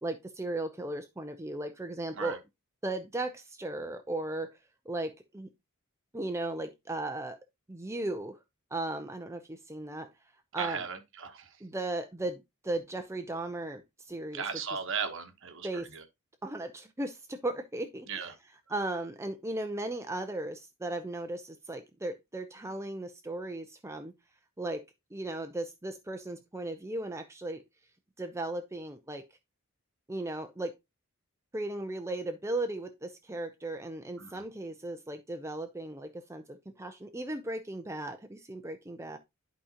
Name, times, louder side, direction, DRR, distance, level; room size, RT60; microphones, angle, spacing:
voice 1, 0.0-2.4 2.8-4.6 4.9-5.5 6.1-7.4 7.7-8.4 8.7-10.1 10.5-10.8 11.6-14.4 15.6-15.9 16.4-18.3 18.7-24.1 24.6-24.8 25.1-27.6 28.2-29.2 30.1-30.7 31.5-39.2, right 2 dB, 10° right, 0.5 m, -36 dB
voice 2, 10.5-11.6 14.3-16.0 18.1-18.3 34.2-34.4, right 6 dB, 60° right, 1.2 m, -37 dB
11.5 x 5.0 x 2.9 m
head